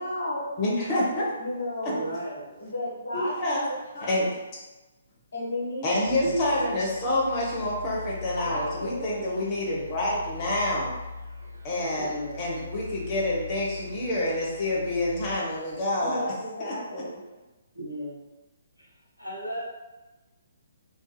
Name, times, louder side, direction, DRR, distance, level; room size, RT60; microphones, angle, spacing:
voice 1, 0.0-0.5 1.4-2.1 2.6-4.3 5.3-5.9 8.4-9.4 16.0-17.2, left 1 dB, 60° left, -5 dB, 1.0 m, -33 dB
voice 2, 0.6-1.3 1.8-1.9 3.1-3.6 4.0-4.3 5.8-10.9 11.6-16.3 16.6-17.0, left 1 dB, 25° left, -5 dB, 0.7 m, -28 dB
voice 3, 1.9-2.5 6.2-6.8 9.7-9.8 12.0-12.6 17.7-18.2 18.8-18.9 19.2-19.8, right 1 dB, 90° right, -5 dB, 0.8 m, -34 dB
sound 1, 6.0-16.3, left 3 dB, 70° right, 0.5 m, -42 dB
2.6 x 2.5 x 2.2 m, 1.1 s
figure-of-eight pair, 130°, 0 cm